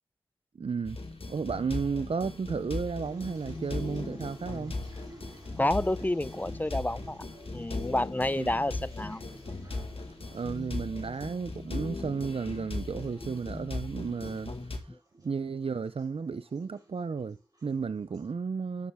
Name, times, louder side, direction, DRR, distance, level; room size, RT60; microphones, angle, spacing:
voice 1, 0.5-1.0 1.3-4.7 8.4-8.5 10.3-14.5 15.2-18.9, right 5 dB, 85° right, 0.4 m, -33 dB
sound 1, 0.8-14.8, left 3 dB, 85° left, 1.5 m, -38 dB
sound 2, 2.6-18.3, right 1 dB, 40° right, 3.4 m, -53 dB
voice 2, 5.6-7.2 7.5-9.2 14.9-15.0, left 1 dB, 20° left, 0.4 m, -29 dB
9.6 x 7.9 x 3.4 m
wide cardioid pair, 55°, 9 cm